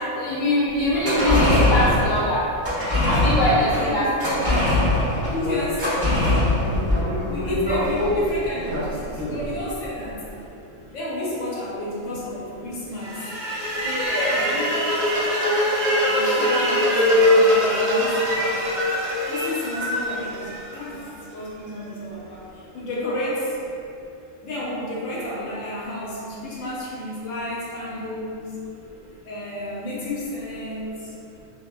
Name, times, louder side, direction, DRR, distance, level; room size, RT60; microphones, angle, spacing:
voice 1, 0.1-2.4 3.0-4.6 13.8-14.6, left 1 dB, 50° left, -7 dB, 0.8 m, -23 dB
sound 1, 0.8-9.5 9.8-9.9, left 1 dB, 20° right, 1.0 m, -22 dB
voice 2, 3.6-4.5 5.3-5.9 6.1-6.6 7.3-10.2 10.9-13.2 14.3-14.5 16.1-18.8 19.3-23.6 24.4-28.6 29.2-31.1, left 1 dB, 80° left, -6 dB, 1.0 m, -31 dB
sound 2, 13.0-21.1, left 1 dB, 65° right, 0.9 m, -22 dB
2.6 x 2.4 x 2.2 m, 2.6 s
omnidirectional pair, 1.3 m